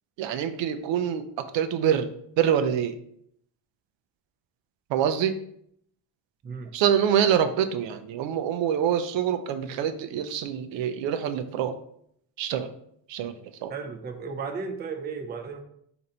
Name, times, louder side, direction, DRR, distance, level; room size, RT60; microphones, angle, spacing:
voice 1, 0.2-2.1 2.4-2.9 4.9-5.4 6.7-11.7 12.4-12.7 13.1-13.3 13.6-13.7, right 9 dB, 80° right, 10 dB, 0.6 m, -25 dB
voice 2, 13.7-15.6, right 5 dB, 25° right, 5 dB, 0.4 m, -34 dB
4.0 x 2.6 x 4.2 m, 0.69 s
cardioid pair, 130°, 44 cm